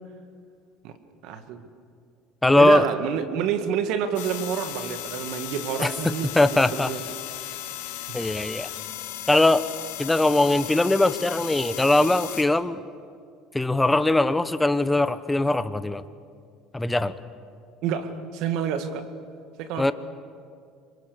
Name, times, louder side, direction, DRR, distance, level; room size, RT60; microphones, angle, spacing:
voice 1, 1.2-1.6 2.5-7.1 8.1-8.3 17.8-19.0 19.6-19.9, right 8 dB, 70° right, 9 dB, 1.9 m, -28 dB
voice 2, 2.4-2.9 5.8-6.9 8.1-8.7 9.3-9.6 10.0-12.8 13.5-16.0 16.7-17.1 19.8-19.9, left 2 dB, 10° left, 13 dB, 1.1 m, -21 dB
sound 1, 4.1-12.4, left 13 dB, 85° left, 1.9 m, -36 dB
28.0 x 25.0 x 7.0 m, 2.2 s
supercardioid pair, 90°, 0 cm